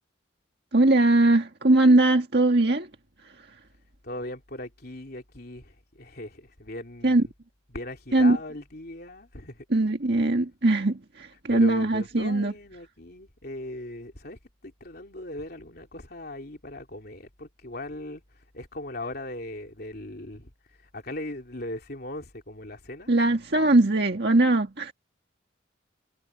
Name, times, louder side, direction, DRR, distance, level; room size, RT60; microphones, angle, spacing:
voice 1, 0.7-2.9 7.0-7.2 8.1-8.4 9.7-12.5 23.1-24.9, right 2 dB, 55° right, 1.8 m, -21 dB
voice 2, 4.0-7.3 7.7-9.6 11.5-20.5 20.8-23.1, left 1 dB, 50° left, 3.4 m, -39 dB
head